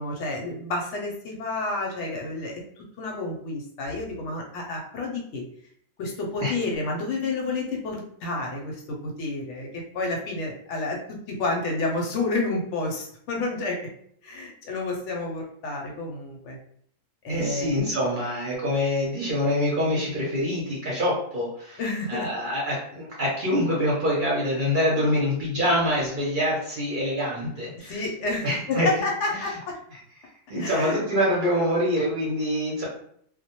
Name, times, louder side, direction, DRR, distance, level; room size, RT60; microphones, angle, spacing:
voice 1, 0.0-2.6 3.0-5.4 6.0-13.8 14.2-16.6 17.2-17.7 21.8-22.3 27.8-29.8 30.6-31.0, left 2 dB, 70° left, 0 dB, 0.8 m, -30 dB
voice 2, 17.3-21.8 22.1-28.0 28.4-28.9 30.5-32.9, equal, 50° right, -5 dB, 0.7 m, -25 dB
2.1 x 2.1 x 2.8 m, 0.65 s
omnidirectional pair, 1.3 m